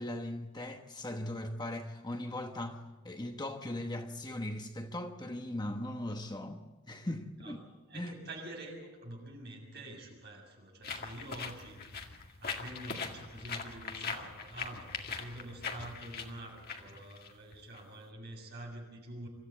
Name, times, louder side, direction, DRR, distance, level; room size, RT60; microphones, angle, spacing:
voice 1, 0.0-7.6 7.9-8.1, left 1 dB, 20° left, 1.0 m, -39 dB
voice 2, 7.9-19.3, right 1 dB, 50° right, 7.0 m, -47 dB
sound 1, 10.8-17.8, left 5 dB, 45° left, 2.0 m, -41 dB
25.0 x 14.0 x 8.4 m
head